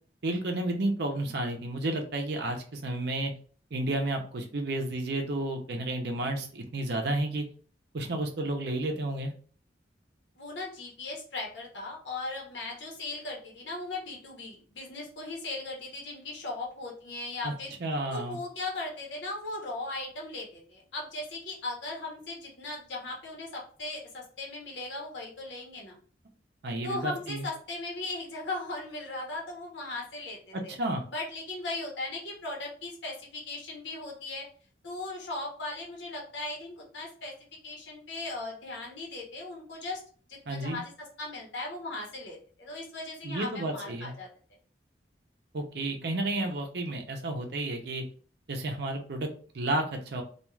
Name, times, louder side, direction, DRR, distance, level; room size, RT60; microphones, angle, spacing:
voice 1, 0.2-3.3 3.7-7.5 7.9-9.3 17.4-17.5 17.8-18.4 26.6-27.5 30.7-31.0 40.5-40.8 43.2-44.1 45.5-48.0 48.5-49.3 49.5-50.2, right 1 dB, 65° right, 3 dB, 0.6 m, -31 dB
voice 2, 10.3-17.7 18.1-26.0 26.8-30.7 31.1-34.5 34.8-37.3 37.6-40.0 40.3-44.3, left 2 dB, 80° left, -2 dB, 0.9 m, -38 dB
2.4 x 2.3 x 3.0 m, 0.43 s
head